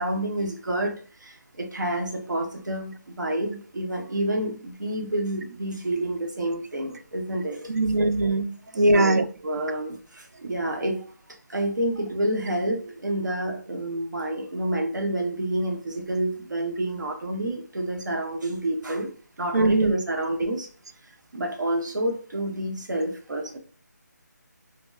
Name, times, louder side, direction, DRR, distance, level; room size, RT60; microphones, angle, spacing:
voice 1, 0.0-8.0 8.7-11.1 11.5-19.1 19.4-20.7 21.3-23.6, right 1 dB, 85° right, 0.9 m, -29 dB
voice 2, 7.7-9.2 19.5-19.9, right 2 dB, 60° right, 0.4 m, -21 dB
4.1 x 2.1 x 2.3 m
figure-of-eight pair, 180°, 10 cm